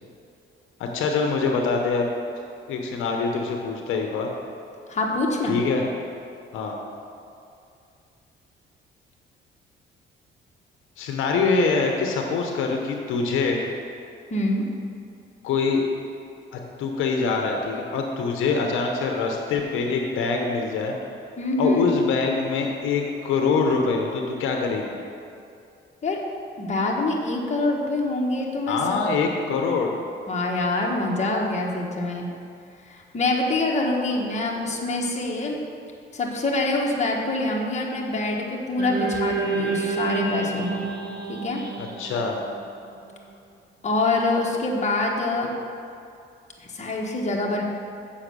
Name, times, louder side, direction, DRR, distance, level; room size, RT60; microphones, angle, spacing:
voice 1, 0.8-2.1 2.7-4.3 5.5-5.8 6.5-6.8 11.0-13.6 15.4-15.8 16.5-21.0 21.6-25.0 28.7-29.9 41.8-42.4, left 4 dB, 85° left, 2 dB, 0.9 m, -24 dB
voice 2, 4.9-5.6 14.3-14.6 21.4-21.9 26.0-26.2 26.6-29.0 30.3-32.3 32.9-35.6 36.1-40.8 41.3-41.6 43.8-45.5 46.7-47.6, left 2 dB, 35° left, -1 dB, 1.5 m, -25 dB
sound 1, 38.8-43.1, right 4 dB, 55° right, 1.5 m, -29 dB
7.2 x 5.7 x 6.7 m, 2.5 s
cardioid pair, 90°, 20 cm